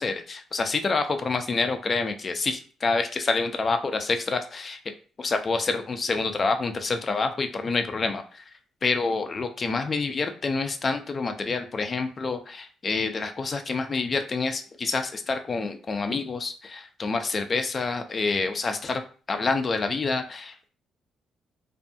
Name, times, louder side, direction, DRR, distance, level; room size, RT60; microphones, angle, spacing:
voice 1, 0.0-4.8 5.2-8.4 8.8-19.0 19.3-20.7, left 4 dB, 40° left, 7 dB, 0.4 m, -27 dB
2.6 x 2.2 x 2.6 m, 0.39 s
cardioid pair, 90°, 0 cm